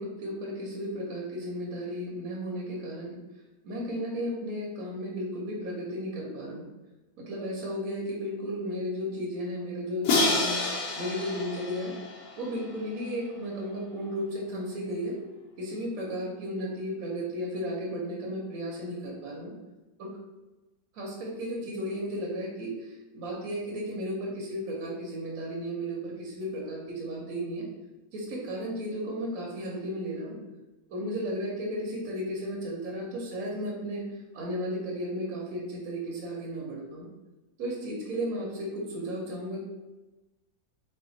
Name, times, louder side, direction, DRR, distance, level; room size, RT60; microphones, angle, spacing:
voice 1, 0.0-3.2 3.6-6.7 7.2-10.6 11.0-12.0 12.4-15.2 15.6-19.5 20.0-20.2 20.9-27.7 28.1-30.4 30.9-34.1 34.3-37.1 37.6-39.6, equal, 60° right, -3 dB, 1.0 m, -34 dB
Crash cymbal, 10.0-13.0, left 3 dB, 70° left, 1.2 m, -29 dB
3.2 x 2.2 x 3.8 m, 1.1 s
omnidirectional pair, 2.0 m